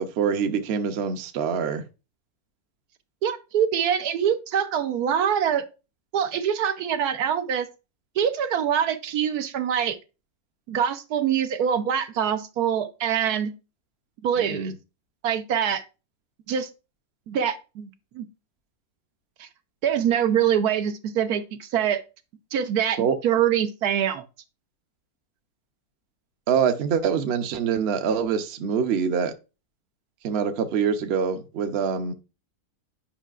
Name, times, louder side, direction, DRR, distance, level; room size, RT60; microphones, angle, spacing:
voice 1, 0.0-1.8 14.4-14.7 23.0-23.2 26.5-29.3 30.2-32.1, right 7 dB, 55° right, 0.8 m, -25 dB
voice 2, 3.2-5.6 6.1-7.7 8.2-10.0 10.7-13.5 14.2-14.7 15.2-15.8 16.5-16.7 17.3-17.9 18.1-18.3 19.4-19.5 19.8-22.0 22.5-24.2, right 8 dB, 80° right, 1.2 m, -24 dB
9.0 x 5.4 x 2.4 m
omnidirectional pair, 1.6 m